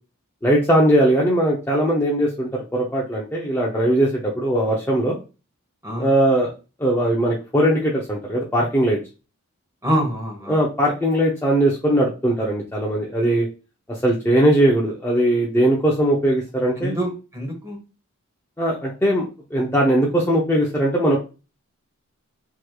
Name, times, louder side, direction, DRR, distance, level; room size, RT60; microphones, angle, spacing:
voice 1, 0.4-5.2 6.0-6.5 6.8-9.0 10.5-13.5 14.0-16.9 18.6-19.2 19.5-21.2, right 1 dB, 10° left, -4 dB, 0.6 m, -19 dB
voice 2, 9.8-10.6 16.8-17.8, equal, 15° right, 1 dB, 1.0 m, -25 dB
4.7 x 3.1 x 2.3 m, 0.31 s
head